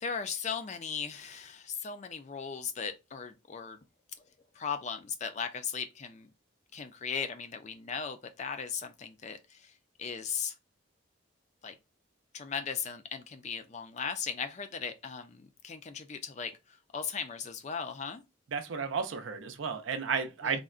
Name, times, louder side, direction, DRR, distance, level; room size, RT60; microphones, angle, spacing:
voice 1, 0.0-3.8 4.5-6.3 6.7-9.7 10.0-10.5 11.6-11.8 12.3-18.2 20.4-20.6, left 6 dB, 35° left, 0.3 m, -37 dB
voice 2, 18.5-20.6, right 6 dB, 70° right, 0.5 m, -33 dB
3.7 x 2.1 x 2.4 m
head